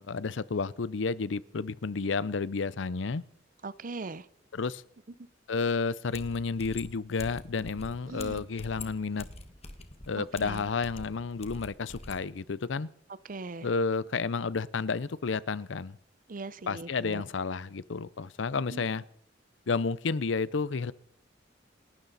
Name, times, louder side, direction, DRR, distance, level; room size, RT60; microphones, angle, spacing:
voice 1, 0.0-3.2 4.5-4.8 5.5-9.3 10.1-12.9 13.6-16.0 16.7-19.0 19.7-20.9, left 4 dB, 75° left, 0.6 m, -31 dB
voice 2, 3.6-4.3 8.1-8.4 10.2-10.7 13.2-13.7 16.3-17.2 18.7-18.9, right 3 dB, 45° right, 0.7 m, -40 dB
sound 1, 6.1-12.2, left 2 dB, 35° left, 1.5 m, -45 dB
28.0 x 12.5 x 4.1 m
head